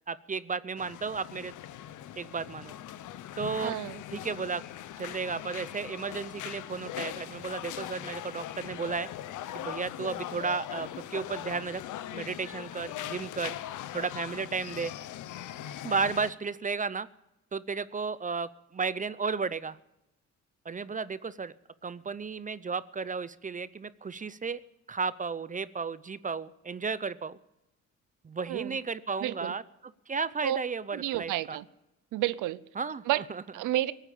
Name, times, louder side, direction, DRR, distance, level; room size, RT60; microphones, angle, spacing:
voice 1, 0.0-1.5 2.2-2.7 3.4-3.7 4.1-4.6 5.0-9.1 9.5-11.8 12.1-13.6 13.9-14.9 15.8-17.1 17.5-19.8 20.7-21.5 21.8-24.6 24.9-27.4 28.2-31.6 32.8-33.4, right 5 dB, 25° right, 17 dB, 0.6 m, -33 dB
sound 1, 0.8-16.3, left 12 dB, 80° left, 0.8 m, -40 dB
voice 2, 3.6-4.0 28.5-28.8 29.2-29.5 30.4-30.6 30.9-31.6 32.1-32.6 33.1-33.2 33.5-33.9, right 15 dB, 90° right, 18 dB, 0.7 m, -30 dB
18.0 x 9.0 x 8.5 m, 0.92 s
cardioid pair, 90°, 30 cm